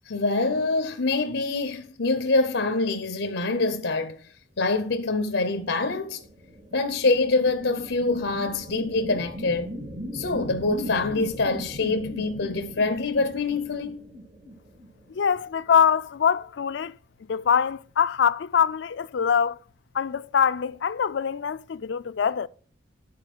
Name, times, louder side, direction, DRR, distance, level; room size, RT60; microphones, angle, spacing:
voice 1, 0.1-4.2 4.6-6.2 6.7-9.8 10.1-14.0, left 3 dB, 90° left, 0.9 m, -25 dB
sound 1, 5.6-15.3, equal, 65° right, 3.3 m, -38 dB
voice 2, 15.1-16.9 17.3-19.6 19.9-22.5, left 7 dB, 65° left, 0.4 m, -23 dB
10.5 x 4.5 x 6.0 m
head